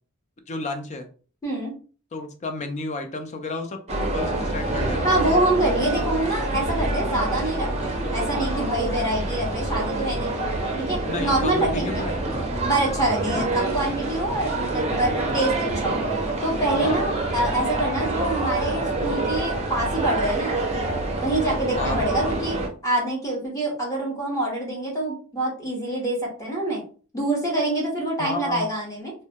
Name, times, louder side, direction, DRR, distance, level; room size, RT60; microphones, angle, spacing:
voice 1, 0.5-1.1 2.1-5.1 6.0-6.1 11.1-12.7 13.4-13.5 16.8-17.1 21.8-22.1 28.2-28.7, left 3 dB, 30° left, 6 dB, 0.4 m, -32 dB
voice 2, 1.4-1.7 5.0-10.3 10.9-12.1 12.6-16.0 16.4-20.6 21.2-26.8 27.1-29.1, right 1 dB, 15° left, -4 dB, 0.8 m, -25 dB
sound 1, 3.9-22.7, right 2 dB, 30° right, 0.5 m, -26 dB
2.1 x 2.1 x 2.8 m, 0.38 s
head